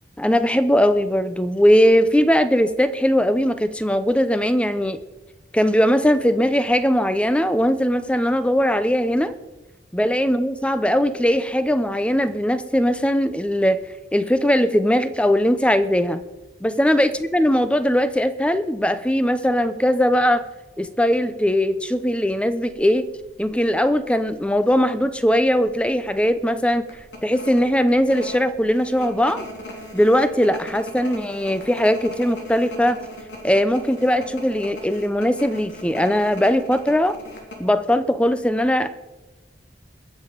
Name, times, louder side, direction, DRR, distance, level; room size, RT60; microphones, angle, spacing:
voice 1, 0.2-5.0 5.5-9.3 9.9-13.8 14.1-16.2 16.6-20.4 20.8-23.1 23.4-26.9 27.2-29.5 29.9-33.0 33.4-37.2 37.6-38.9, equal, 5° left, 11 dB, 0.6 m, -20 dB
sound 1, 23.4-23.5 23.8-24.7 25.1-25.2 25.6-25.8 26.2-26.3 26.9-37.7, left 1 dB, 90° left, 3.3 m, -38 dB
21.5 x 7.7 x 5.2 m, 1.1 s
head